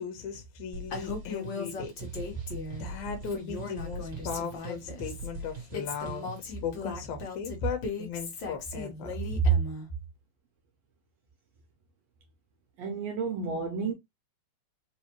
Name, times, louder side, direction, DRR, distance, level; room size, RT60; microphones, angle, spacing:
voice 1, 0.0-2.4 2.8-9.6, right 1 dB, 80° left, 2.2 m, -34 dB
sound 1, 0.7-6.6, right 2 dB, 35° right, 1.7 m, -43 dB
Female speech woman speaking, 0.9-2.9 3.3-5.3 5.7-9.9, left 4 dB, 55° left, 1.4 m, -38 dB
voice 2, 12.8-13.9, right 4 dB, 75° right, 1.6 m, -32 dB
4.8 x 2.7 x 3.0 m
omnidirectional pair, 3.5 m